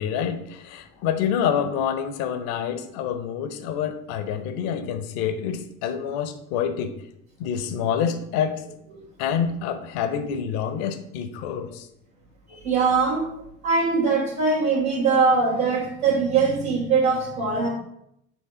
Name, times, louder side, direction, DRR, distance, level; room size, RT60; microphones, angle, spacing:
voice 1, 0.0-7.0 7.4-8.6 9.2-11.9, left 8 dB, 55° left, 10 dB, 0.8 m, -27 dB
voice 2, 12.5-13.3 13.6-17.7, right 4 dB, 80° right, -8 dB, 1.5 m, -21 dB
7.2 x 3.2 x 4.8 m, 0.77 s
figure-of-eight pair, 65°, 41 cm